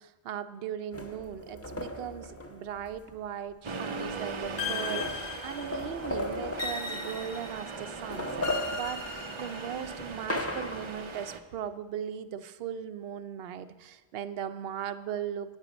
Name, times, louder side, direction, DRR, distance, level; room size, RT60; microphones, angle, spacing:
voice 1, 0.0-15.6, right 9 dB, 70° right, 12 dB, 0.7 m, -38 dB
sound 1, 0.9-3.1 4.1-4.2 4.4-7.6 7.9-11.1, left 1 dB, 15° left, 0.6 m, -37 dB
Accelerating revving vroom, 3.6-11.4, right 4 dB, 40° right, 0.4 m, -39 dB
sound 2, 4.6-5.9 6.6-7.7 8.4-9.9, left 5 dB, 70° left, 1.1 m, -37 dB
9.8 x 9.0 x 5.0 m, 1.3 s
omnidirectional pair, 1.1 m